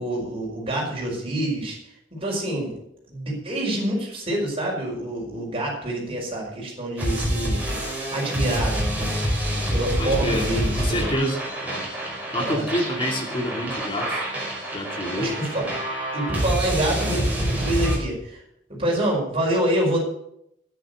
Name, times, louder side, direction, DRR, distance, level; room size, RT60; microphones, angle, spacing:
voice 1, 0.0-1.8 2.1-2.8 3.1-7.6 8.1-8.9 9.7-11.1 12.3-12.6 15.1-15.7 16.1-18.4 18.7-20.0, right 1 dB, 30° right, -2 dB, 5.2 m, -26 dB
sound 1, 7.0-18.0, equal, 10° right, 5.2 m, -27 dB
voice 2, 10.0-10.5 10.7-11.8 12.3-14.2 14.7-15.4, equal, 25° left, 2 dB, 2.6 m, -27 dB
11.0 x 10.0 x 6.8 m, 0.76 s
head